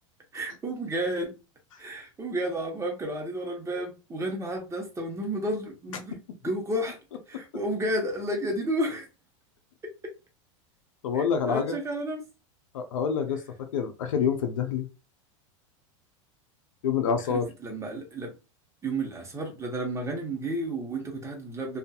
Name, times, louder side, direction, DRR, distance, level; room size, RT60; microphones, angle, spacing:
voice 1, 0.3-1.3 1.8-6.2 6.4-7.0 7.3-9.1 11.1-12.2 17.3-18.3 18.8-21.8, right 1 dB, 15° right, 1.0 m, -31 dB
voice 2, 11.0-11.8 12.7-14.9 16.8-17.5, left 7 dB, 80° left, 0.6 m, -27 dB
2.6 x 2.4 x 2.3 m
hypercardioid pair, 105°, 17 cm